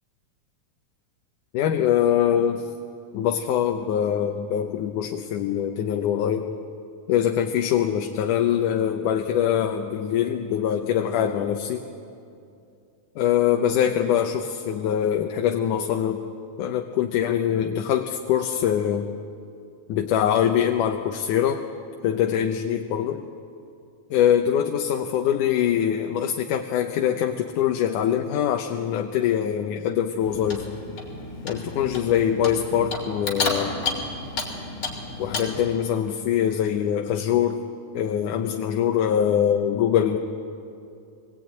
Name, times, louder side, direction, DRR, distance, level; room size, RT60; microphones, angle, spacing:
voice 1, 1.5-2.6 3.1-6.5 7.1-11.8 13.2-16.2 16.6-19.1 19.9-21.6 22.0-23.2 24.1-30.6 31.4-33.8 35.2-37.6 37.9-40.2, left 9 dB, 90° left, 4 dB, 2.4 m, -23 dB
Clock, 30.2-35.7, left 3 dB, 40° left, 4.0 m, -31 dB
23.0 x 19.5 x 9.1 m, 2.6 s
omnidirectional pair, 3.5 m